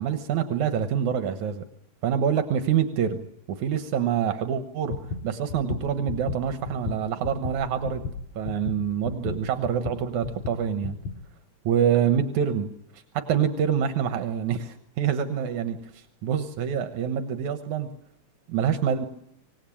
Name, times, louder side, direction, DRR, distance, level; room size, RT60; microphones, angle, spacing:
voice 1, 0.0-1.6 2.0-3.2 3.5-8.0 8.4-11.0 11.7-17.9 18.5-19.1, right 8 dB, 80° right, 8 dB, 2.7 m, -26 dB
sound 1, 4.9-11.2, left 4 dB, 75° left, 3.5 m, -34 dB
26.0 x 18.5 x 8.7 m, 0.73 s
omnidirectional pair, 3.4 m